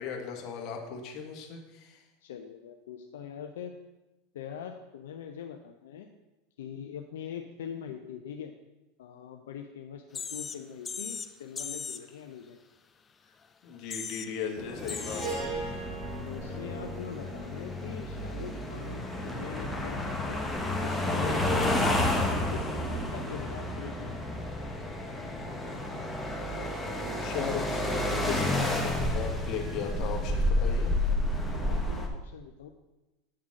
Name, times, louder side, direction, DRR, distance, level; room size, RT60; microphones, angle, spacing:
voice 1, 0.0-2.0 13.6-15.8 27.2-30.9, left 7 dB, 50° left, 2 dB, 1.5 m, -37 dB
voice 2, 2.2-3.7 4.3-6.1 6.6-8.5 9.0-12.6 15.8-20.4 20.8-24.2 31.5-32.7, left 8 dB, 80° left, 5 dB, 0.5 m, -43 dB
sound 1, 10.1-10.6 10.8-11.3 11.6-12.0 13.4-13.5 13.7-14.3 14.9-15.3 15.9-16.0 20.6-20.7, left 5 dB, 25° left, 0.5 m, -37 dB
sound 2, 14.6-32.1, left 1 dB, 5° left, 1.1 m, -31 dB
Harp, 14.8-19.2, right 3 dB, 15° right, 1.9 m, -40 dB
8.7 x 3.7 x 6.3 m, 1.0 s
hypercardioid pair, 100°, 0 cm